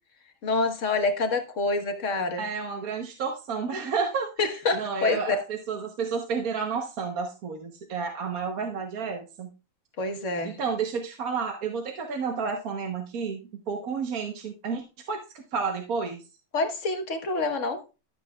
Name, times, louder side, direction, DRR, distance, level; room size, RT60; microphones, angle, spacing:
voice 1, 0.4-2.4 4.4-5.4 10.0-10.6 16.5-17.8, left 3 dB, 55° left, 1.6 m, -27 dB
voice 2, 2.4-9.5 10.4-16.2, right 5 dB, 70° right, 1.6 m, -31 dB
12.5 x 8.2 x 2.3 m
omnidirectional pair, 1.6 m